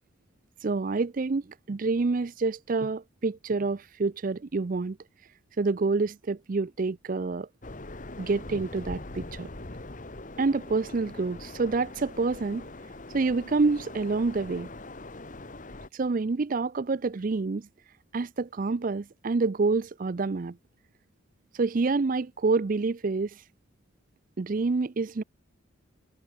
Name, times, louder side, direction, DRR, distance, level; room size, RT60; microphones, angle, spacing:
voice 1, 0.6-5.0 5.6-7.5 8.2-9.5 10.4-12.7 13.1-14.7 15.9-17.7 18.1-20.6 21.6-23.4 24.4-25.2, right 3 dB, 40° right, 0.5 m, -27 dB
sound 1, 7.6-15.9, left 2 dB, 40° left, 1.4 m, -42 dB
head